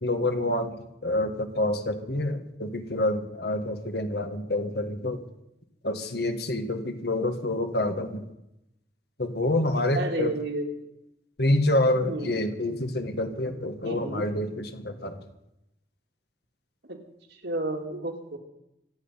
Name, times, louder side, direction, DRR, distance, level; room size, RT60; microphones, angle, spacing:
voice 1, 0.0-5.2 5.8-8.2 9.2-10.3 11.4-15.2, left 1 dB, 60° left, 7 dB, 1.7 m, -27 dB
voice 2, 9.9-10.9 11.9-12.4 13.8-14.3 16.9-17.0 17.3-18.4, right 2 dB, 70° right, 2 dB, 2.5 m, -32 dB
25.0 x 9.1 x 5.7 m, 0.86 s
head